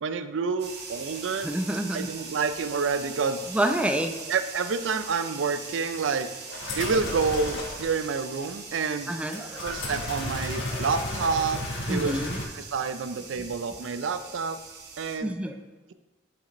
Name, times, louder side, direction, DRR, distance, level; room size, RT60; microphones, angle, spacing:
voice 1, 0.0-1.5 1.9-3.5 4.3-6.3 6.8-9.1 9.5-11.6 11.9-12.3 12.5-14.6 15.0-15.3, right 5 dB, 85° right, 10 dB, 0.4 m, -28 dB
sound 1, 0.6-15.2, right 5 dB, 60° right, 1.0 m, -41 dB
voice 2, 1.4-2.1 3.5-4.2 9.1-9.6 11.9-12.4 15.2-15.5, right 1 dB, 5° right, 6 dB, 0.4 m, -28 dB
sound 2, 6.5-7.9 9.3-12.4, left 1 dB, 75° left, 1.1 m, -33 dB
8.4 x 4.9 x 3.0 m, 1.1 s
head